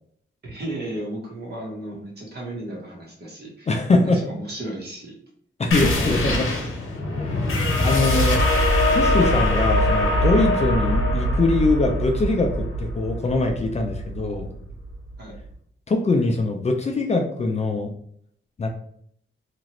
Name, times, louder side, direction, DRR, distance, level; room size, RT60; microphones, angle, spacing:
voice 1, 0.4-5.1 6.0-6.7 15.2-15.3, right 1 dB, 50° right, -2 dB, 1.1 m, -35 dB
voice 2, 3.7-4.2 5.6-6.5 7.2-7.4 7.8-8.4 8.9-12.5 12.8-14.5 15.9-17.9 18.6-18.7, left 2 dB, 35° left, 3 dB, 0.4 m, -22 dB
sound 1, 5.7-14.9, left 1 dB, 85° left, 0.9 m, -22 dB
2.9 x 2.4 x 2.9 m, 0.66 s
wide cardioid pair, 150°, 20 cm